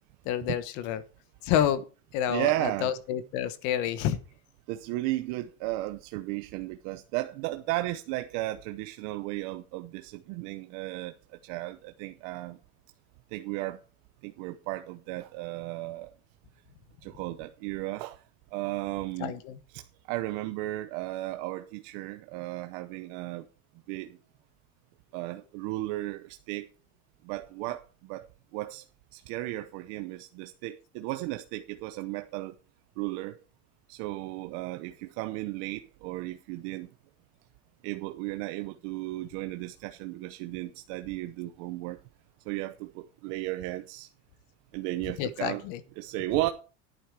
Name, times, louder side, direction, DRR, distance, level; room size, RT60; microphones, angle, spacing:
voice 1, 0.2-1.0 1.4-1.9 2.1-4.2 19.2-19.6 45.2-45.8, left 10 dB, 50° left, 1.3 m, -29 dB
voice 2, 2.3-2.9 4.7-11.2 11.4-12.6 13.3-13.8 14.2-16.1 17.0-18.2 18.5-19.3 19.7-23.5 23.9-24.2 25.1-26.7 27.2-28.3 28.5-28.8 29.1-32.6 33.0-33.4 33.9-36.9 37.8-42.0 42.5-44.1 44.7-45.6 46.0-46.5, right 18 dB, 50° right, 0.8 m, -34 dB
11.0 x 8.9 x 4.7 m
cardioid pair, 170°, 37 cm